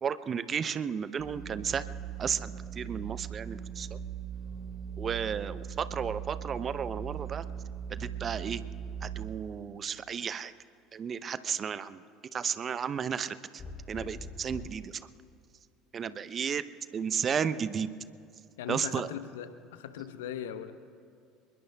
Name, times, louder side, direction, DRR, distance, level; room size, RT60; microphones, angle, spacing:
voice 1, 0.0-1.9 2.2-3.9 5.0-7.4 7.9-8.6 9.0-10.5 10.9-12.0 12.3-13.6 13.9-15.0 15.9-16.6 16.9-17.9 18.7-19.1, right 7 dB, 35° right, 14 dB, 0.7 m, -33 dB
sound 1, 1.2-9.2, right 8 dB, 15° right, 4.1 m, -39 dB
sound 2, 13.6-14.9 16.5-17.1, left 3 dB, 35° left, 3.3 m, -43 dB
voice 2, 18.6-20.7, left 9 dB, 70° left, 10 dB, 0.9 m, -39 dB
28.0 x 21.0 x 2.3 m, 2.5 s
figure-of-eight pair, 65°, 0 cm